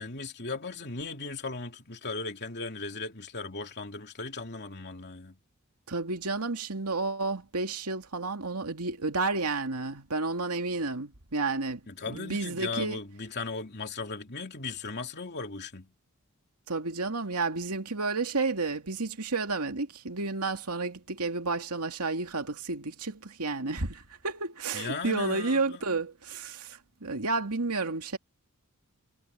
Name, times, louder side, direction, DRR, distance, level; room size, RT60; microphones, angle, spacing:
voice 1, 0.0-5.4 11.9-15.9 24.7-25.8, left 3 dB, 50° left, 2.9 m, -37 dB
voice 2, 5.9-13.0 16.7-28.2, right 3 dB, 90° right, 2.5 m, -31 dB
head